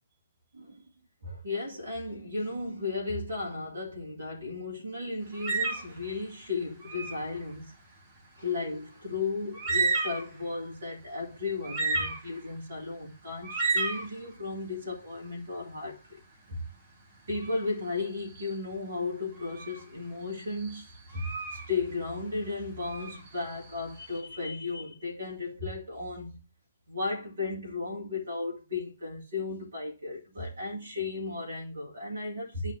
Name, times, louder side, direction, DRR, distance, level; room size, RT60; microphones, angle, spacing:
voice 1, 0.5-0.9 1.2-7.7 8.4-16.2 16.5-16.6 17.3-26.4 26.9-32.7, left 3 dB, 75° right, 2.4 m, -35 dB
sound 1, 5.3-6.0 6.8-7.3 9.2-9.3 9.5-10.4 11.0-11.1 11.6-12.5 13.4-14.1 17.4-17.6 18.3-18.7 19.4-19.8 20.4-21.7 22.8-23.9, right 3 dB, 40° right, 2.1 m, -31 dB
11.5 x 4.2 x 2.8 m
figure-of-eight pair, 125°, 0 cm